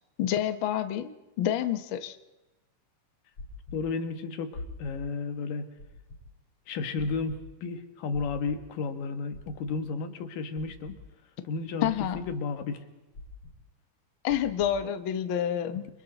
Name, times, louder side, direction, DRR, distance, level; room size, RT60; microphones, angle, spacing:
voice 1, 0.2-1.1 1.4-2.2 11.8-12.2 14.2-15.9, left 10 dB, 70° left, 10 dB, 1.2 m, -28 dB
sound 1, 3.4-3.8 4.5-5.0 5.8-6.2 7.0-7.4 8.1-8.6 9.3-9.7 10.6-11.0 11.8-12.2 13.1-13.5 14.3-14.7, left 2 dB, 40° left, 6.2 m, -43 dB
voice 2, 3.7-5.7 6.7-11.0 11.4-12.8, left 4 dB, 90° left, 7 dB, 3.2 m, -33 dB
29.0 x 24.5 x 4.0 m, 1.1 s
omnidirectional pair, 3.7 m